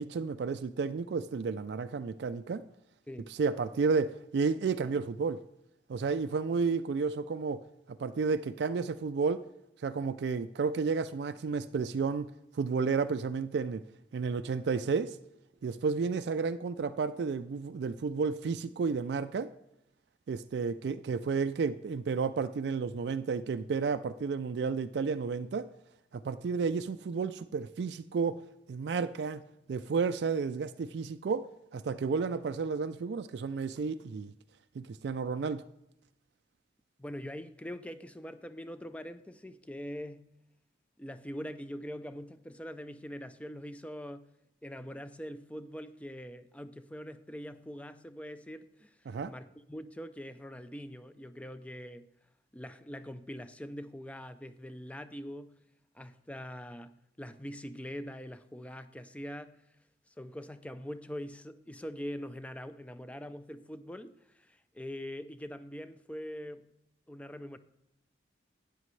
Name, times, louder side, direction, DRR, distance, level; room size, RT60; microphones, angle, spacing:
voice 1, 0.0-2.6 3.3-5.4 5.9-7.6 7.9-9.4 9.8-13.8 14.1-15.2 15.6-19.5 20.3-25.7 26.1-28.4 28.7-29.4 29.7-34.3 34.8-35.6 49.1-49.3, right 5 dB, 65° right, 0.3 m, -32 dB
voice 2, 37.0-40.3 41.0-44.3 44.6-49.0 49.3-52.1 52.5-55.5 55.9-56.9 57.2-59.6 60.1-66.7 67.1-67.6, equal, 5° left, 0.4 m, -43 dB
12.5 x 9.1 x 3.2 m
head